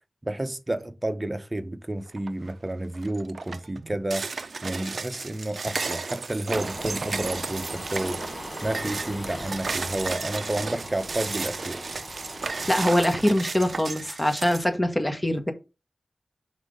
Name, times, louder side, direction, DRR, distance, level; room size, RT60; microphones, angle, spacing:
voice 1, 0.2-8.2 8.6-11.8 13.6-13.7, right 1 dB, 25° right, 0.8 m, -31 dB
sound 1, 2.2-2.5 2.9-14.6, right 4 dB, 70° right, 0.4 m, -34 dB
sound 2, 6.5-13.1, equal, 5° right, 3.9 m, -39 dB
voice 2, 12.4-15.5, left 1 dB, 15° left, 1.3 m, -24 dB
5.8 x 3.7 x 5.2 m
wide cardioid pair, 85°, 0 cm